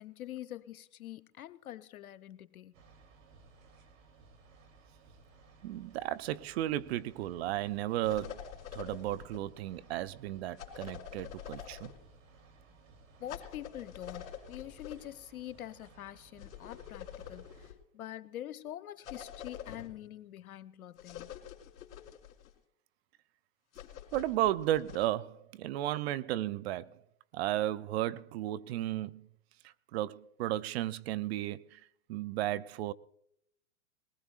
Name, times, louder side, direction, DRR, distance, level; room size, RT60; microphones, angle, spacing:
voice 1, 0.0-2.7 13.2-21.3, left 12 dB, 75° left, 0.8 m, -45 dB
sound 1, 2.7-17.7, right 4 dB, 65° right, 3.2 m, -60 dB
voice 2, 5.6-11.9 24.1-27.0 27.3-29.3 29.9-31.8 32.1-32.9, right 14 dB, 50° right, 0.5 m, -34 dB
sound 2, 8.0-9.4 10.6-12.0 13.3-15.0 16.4-17.7 19.0-19.9 21.0-22.5 23.7-25.1, left 9 dB, 50° left, 3.3 m, -46 dB
21.0 x 19.0 x 2.4 m
hypercardioid pair, 115°, 43 cm